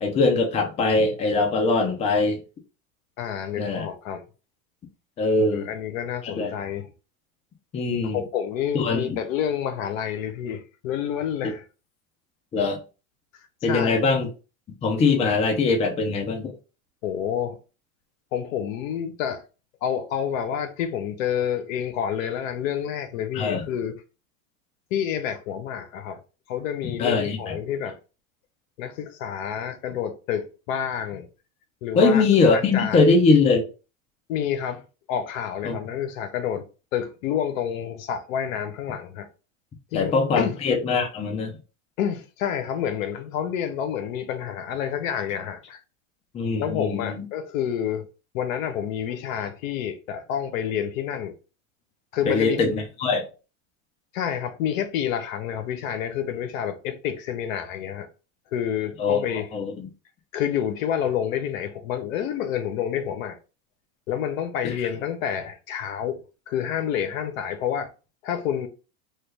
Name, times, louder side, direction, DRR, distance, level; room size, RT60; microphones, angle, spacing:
voice 1, 0.0-2.4 3.6-3.9 5.2-5.7 6.2-6.5 7.7-8.2 8.7-9.2 12.5-12.8 13.6-14.3 14.8-16.5 23.3-23.6 27.0-27.6 31.9-33.7 35.6-35.8 39.9-41.5 46.3-47.2 52.3-53.2 59.0-59.2 59.5-59.9 64.6-64.8, left 3 dB, 15° left, 0.5 m, -22 dB
voice 2, 3.2-4.2 5.3-6.9 8.0-11.6 13.7-14.0 17.0-17.6 18.3-19.4 19.8-24.0 24.9-26.2 26.5-28.0 28.8-31.3 31.8-32.2 32.5-33.1 34.3-34.8 35.1-36.6 36.9-39.3 39.9-40.6 42.0-45.8 46.6-48.1 48.3-51.3 52.1-52.6 54.1-58.1 58.5-59.5 60.3-63.4 64.1-66.2 66.5-67.9 68.2-68.7, left 9 dB, 70° left, 0.8 m, -28 dB
3.2 x 2.3 x 3.2 m
supercardioid pair, 135°, 41 cm